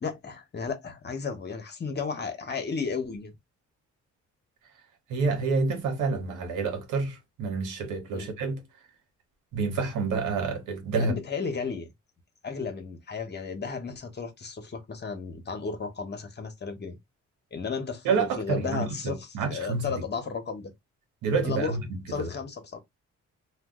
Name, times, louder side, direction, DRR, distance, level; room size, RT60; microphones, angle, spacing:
voice 1, 0.0-3.3 8.1-8.3 10.9-11.9 12.4-17.0 17.5-19.2 19.5-20.7 21.4-21.8 22.1-22.8, left 5 dB, 35° left, 1.0 m, -34 dB
voice 2, 5.1-8.6 9.5-11.2 18.0-20.0 21.2-21.9 22.2-22.3, right 4 dB, 90° right, 1.0 m, -28 dB
2.5 x 2.4 x 3.6 m
cardioid pair, 90°, 30 cm